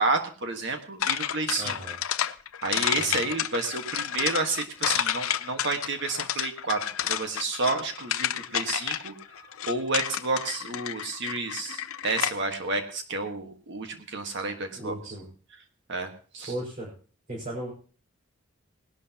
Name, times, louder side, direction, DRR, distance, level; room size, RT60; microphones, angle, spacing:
voice 1, 0.0-1.7 2.6-9.1 9.7-15.1 15.9-16.5, right 3 dB, 55° right, 5 dB, 1.5 m, -30 dB
sound 1, 1.0-12.6, left 10 dB, 80° left, 0.6 m, -30 dB
voice 2, 1.6-2.0 2.9-3.3 14.7-15.3 16.5-16.9 17.3-17.7, right 1 dB, 40° right, -6 dB, 5.2 m, -36 dB
20.0 x 12.0 x 2.9 m, 0.39 s
head